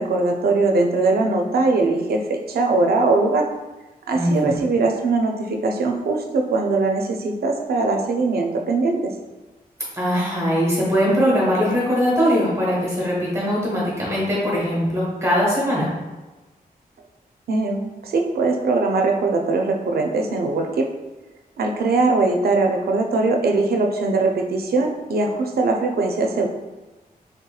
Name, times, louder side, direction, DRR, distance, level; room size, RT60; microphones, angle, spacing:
voice 1, 0.0-3.5 4.1-9.1 17.5-20.9 21.6-26.5, right 3 dB, 80° right, 2 dB, 0.4 m, -21 dB
voice 2, 4.1-4.6 9.9-15.9, equal, 20° right, -5 dB, 1.1 m, -21 dB
3.4 x 2.8 x 2.3 m, 1.1 s
wide cardioid pair, 135°, 16 cm